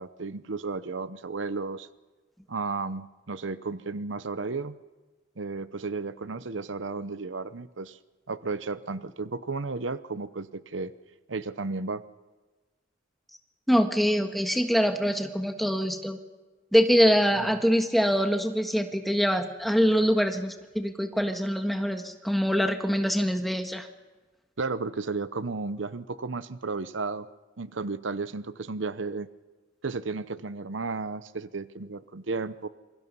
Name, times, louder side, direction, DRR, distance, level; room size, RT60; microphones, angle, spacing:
voice 1, 0.0-1.9 2.5-4.8 5.4-8.0 8.3-10.9 11.3-12.0 17.4-17.5 24.6-27.3 27.6-29.3 29.8-32.7, right 3 dB, 75° right, 14 dB, 0.8 m, -33 dB
voice 2, 13.7-16.2 16.7-23.9, equal, ahead, 6 dB, 1.6 m, -24 dB
27.0 x 23.0 x 5.5 m, 1.3 s
head